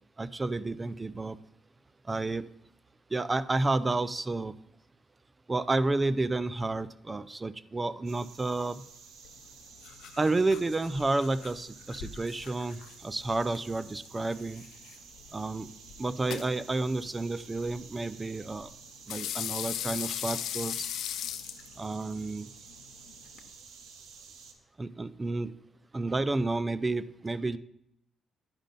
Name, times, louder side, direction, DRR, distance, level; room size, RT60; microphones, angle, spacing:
voice 1, 0.2-1.4 2.0-2.5 3.1-4.5 5.5-8.8 10.2-14.6 15.3-15.7 16.0-18.7 19.1-20.9 21.8-22.5 24.8-25.5 25.9-27.6, right 2 dB, 20° right, 16 dB, 0.4 m, -30 dB
sound 1, 8.1-24.5, right 5 dB, 75° right, 1.1 m, -52 dB
sound 2, 9.2-23.5, left 10 dB, 80° left, 0.5 m, -41 dB
10.5 x 5.1 x 5.3 m, 0.78 s
cardioid pair, 90°, 0 cm